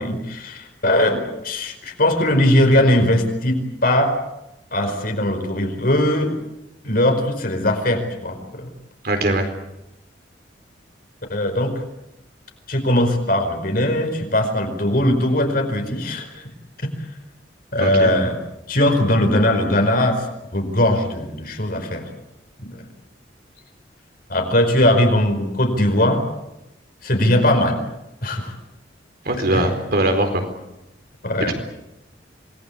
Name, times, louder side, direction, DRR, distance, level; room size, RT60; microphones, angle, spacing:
voice 1, 0.0-4.1 4.7-6.3 6.8-8.7 11.3-11.7 12.7-16.5 17.7-18.4 18.7-20.3 20.5-22.1 22.6-22.7 24.3-26.2 27.0-27.8 28.2-28.5 29.5-29.7 31.2-31.5, left 1 dB, 50° left, 4 dB, 4.9 m, -19 dB
voice 2, 9.0-9.4 17.8-18.1 29.3-30.4 31.4-31.5, right 1 dB, 55° right, 5 dB, 4.3 m, -21 dB
27.5 x 20.5 x 8.6 m, 0.91 s
head